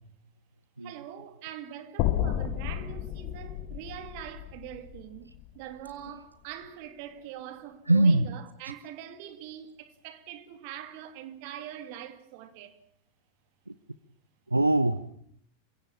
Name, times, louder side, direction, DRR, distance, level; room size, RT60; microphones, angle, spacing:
voice 1, 0.8-12.8, right 11 dB, 45° right, 2.8 m, -43 dB
sound 1, 2.0-6.2, left 12 dB, 45° left, 1.4 m, -32 dB
voice 2, 7.9-8.3 14.5-15.1, right 2 dB, 85° right, 0.9 m, -22 dB
29.5 x 16.5 x 8.8 m
figure-of-eight pair, 90°, 0 cm